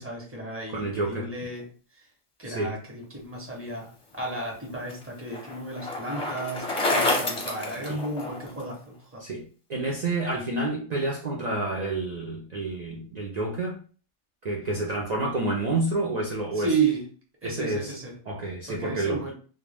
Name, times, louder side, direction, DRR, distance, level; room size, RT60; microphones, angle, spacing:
voice 1, 0.0-1.7 1.9-2.0 2.4-9.2 16.5-17.0 17.4-18.1 18.7-19.3, right 4 dB, 15° right, -1 dB, 0.6 m, -32 dB
voice 2, 0.7-1.3 2.5-2.8 7.8-8.0 9.2-13.8 14.4-16.7 17.4-17.9 18.3-19.2, right 2 dB, 65° right, -2 dB, 0.4 m, -29 dB
Bicycle, 4.2-8.6, left 2 dB, 35° left, 0.6 m, -29 dB
2.2 x 2.1 x 3.3 m, 0.39 s
omnidirectional pair, 1.3 m